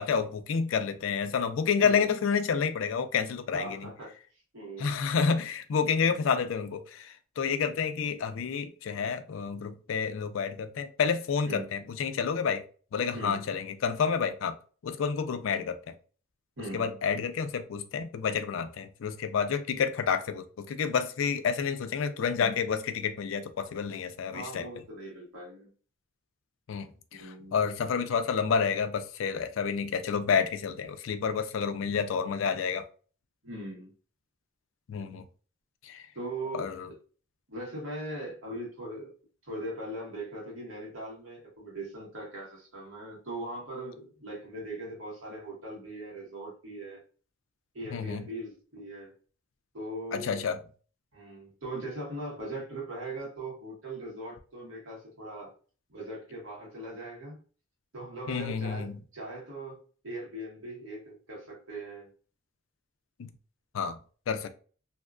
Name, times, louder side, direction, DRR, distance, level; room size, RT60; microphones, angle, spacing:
voice 1, 0.0-3.9 4.8-12.6 12.9-14.6 14.8-15.8 16.7-24.7 26.7-32.8 34.9-35.2 35.8-36.1 36.5-36.9 47.9-48.2 50.1-50.6 58.3-58.9 63.2-63.3 63.7-64.0 64.3-64.5, left 6 dB, 75° left, 0.4 m, -29 dB
voice 2, 3.5-4.2 4.5-5.0 11.4-11.7 13.1-13.4 16.6-17.0 24.3-25.7 27.1-27.6 33.4-33.9 36.1-36.7 37.5-39.1 39.4-47.0 47.7-49.1 49.7-50.5 51.1-55.5 55.9-57.4 57.9-62.1, right 1 dB, 90° right, 1.4 m, -40 dB
2.7 x 2.2 x 2.4 m
head